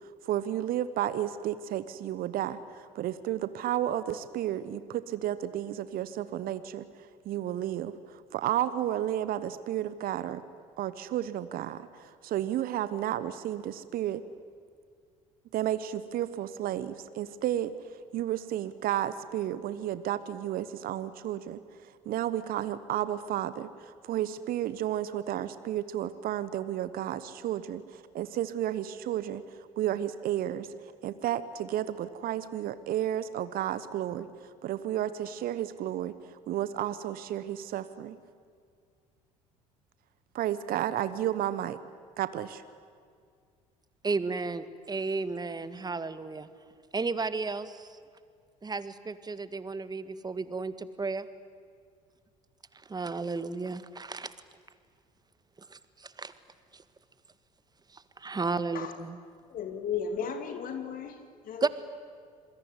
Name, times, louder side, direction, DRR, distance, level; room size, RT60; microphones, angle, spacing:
voice 1, 0.0-6.9 7.2-10.4 10.8-14.2 15.5-17.7 18.1-29.4 29.8-30.7 31.0-36.1 36.5-38.2 40.3-41.8 42.2-42.6, right 12 dB, 55° right, 1.1 m, -32 dB
voice 2, 44.0-46.5 46.9-48.0 48.6-51.3 52.9-54.3 55.6-56.3 56.7-56.8 57.9-59.2 61.6-61.7, right 4 dB, 20° right, 1.8 m, -33 dB
voice 3, 59.5-61.7, left 7 dB, 50° left, 2.4 m, -35 dB
27.0 x 21.5 x 9.8 m
hypercardioid pair, 60°, 18 cm